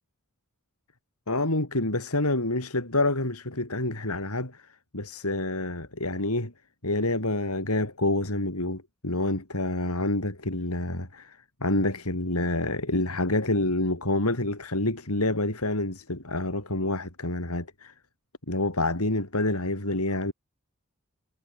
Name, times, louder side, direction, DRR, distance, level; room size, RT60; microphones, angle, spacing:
voice 1, 1.3-4.6 4.9-6.5 6.8-17.9 18.5-20.3, left 2 dB, 75° left, 6.1 m, -27 dB
head